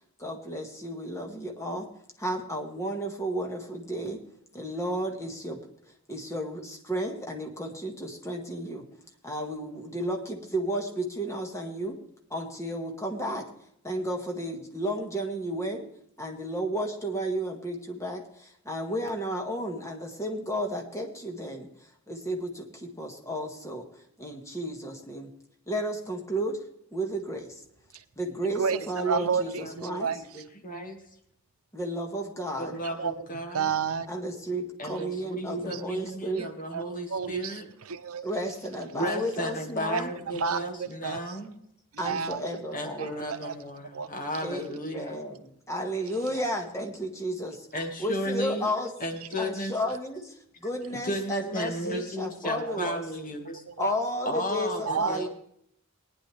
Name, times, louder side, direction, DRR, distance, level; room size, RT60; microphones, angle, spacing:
voice 1, 0.2-1.9 2.2-4.2 4.5-5.6 6.1-8.9 9.2-12.0 12.3-13.4 13.8-15.9 16.2-21.7 22.1-23.9 24.2-25.3 25.7-26.6 26.9-27.6 28.2-30.1 31.7-32.7 34.1-36.5 38.2-40.1 42.0-43.1 44.4-47.7 48.0-48.9 49.4-53.0 53.8-55.3, equal, 15° left, 2 dB, 1.8 m, -33 dB
voice 2, 28.5-30.4 32.7-34.1 35.7-35.8 36.3-36.8 37.1-38.3 39.9-41.4 41.9-42.5 43.0-43.6 43.8-44.1 46.1-46.4 49.3-49.5 52.6-52.8 53.7-54.0 54.9-55.3, right 6 dB, 80° right, 11 dB, 0.8 m, -32 dB
voice 3, 29.6-30.0 30.3-31.0 32.6-33.7 34.8-37.6 38.9-41.5 42.7-45.2 47.7-48.7 49.0-49.7 50.9-53.6 54.3-55.3, equal, 40° left, 3 dB, 2.2 m, -34 dB
19.0 x 10.0 x 3.5 m, 0.71 s
head